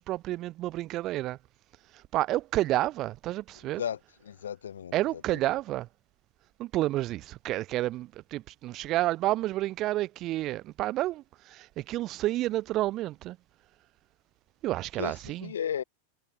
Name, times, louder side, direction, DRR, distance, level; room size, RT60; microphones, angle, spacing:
voice 1, 0.0-1.4 2.1-3.8 4.9-5.9 6.6-13.4 14.6-15.5, right 16 dB, 35° right, 1.5 m, -30 dB
voice 2, 4.2-5.4 15.0-15.1 15.4-15.8, left 9 dB, 65° left, 1.3 m, -34 dB
figure-of-eight pair, 90°, 0 cm